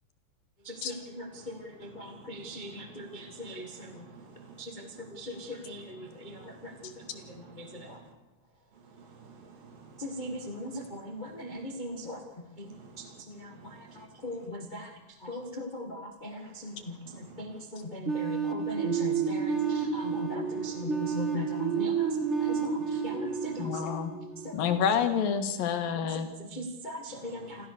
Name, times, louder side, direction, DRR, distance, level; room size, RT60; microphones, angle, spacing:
voice 1, 0.6-4.1 4.6-8.0 10.0-23.9 24.3-24.8 25.9-27.7, left 1 dB, 30° left, 4 dB, 0.8 m, -40 dB
voice 2, 3.9-4.6 6.2-6.6 7.1-8.0 9.0-10.0 12.7-13.1 13.5-14.0 17.2-17.4 19.6-20.0 21.1-21.2, right 5 dB, 70° right, 5 dB, 4.3 m, -52 dB
sound 1, 18.1-24.8, right 6 dB, 30° right, 1.3 m, -30 dB
voice 3, 23.6-24.1 24.5-26.3, left 7 dB, 75° left, 8 dB, 3.3 m, -28 dB
27.5 x 14.5 x 6.8 m, 1.0 s
omnidirectional pair, 4.1 m